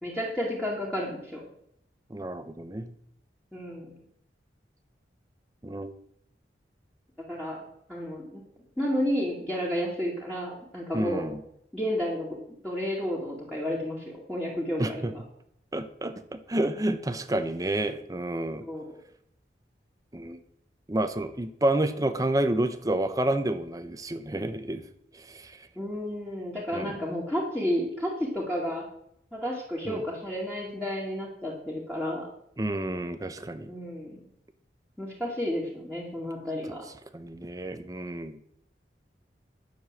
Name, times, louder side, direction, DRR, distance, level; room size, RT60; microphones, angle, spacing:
voice 1, 0.0-1.4 3.5-3.9 7.3-7.6 7.9-8.4 8.8-11.3 11.7-12.4 12.6-15.2 18.6-18.9 25.8-28.8 29.3-32.3 33.7-34.2 35.0-36.8, equal, 5° left, -5 dB, 2.2 m, -31 dB
voice 2, 2.1-2.9 5.6-5.9 10.9-11.4 14.8-15.1 15.7-18.7 20.1-20.4 20.9-24.8 25.2-25.6 26.7-26.9 29.9-30.0 32.6-33.7 37.1-38.4, right 1 dB, 20° right, 10 dB, 0.6 m, -29 dB
11.0 x 6.8 x 7.4 m, 0.71 s
head